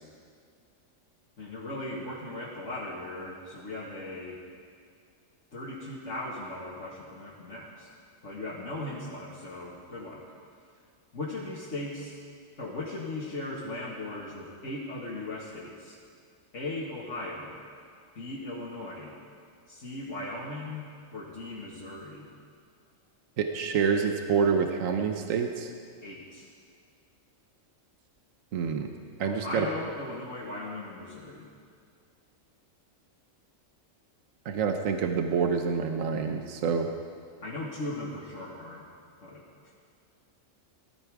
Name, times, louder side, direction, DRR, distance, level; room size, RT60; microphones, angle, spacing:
voice 1, 1.4-4.4 5.5-7.9 8.2-10.3 11.1-12.2 12.6-16.0 16.5-17.6 18.1-19.2 19.7-22.3 26.0-26.5 29.2-31.5 37.4-38.8 39.2-39.7, left 2 dB, 65° left, -7 dB, 2.2 m, -38 dB
voice 2, 23.4-25.7 28.5-28.9 29.2-29.7 34.4-36.9, right 6 dB, 80° right, 5 dB, 1.3 m, -27 dB
19.0 x 13.5 x 4.8 m, 2.2 s
omnidirectional pair, 1.4 m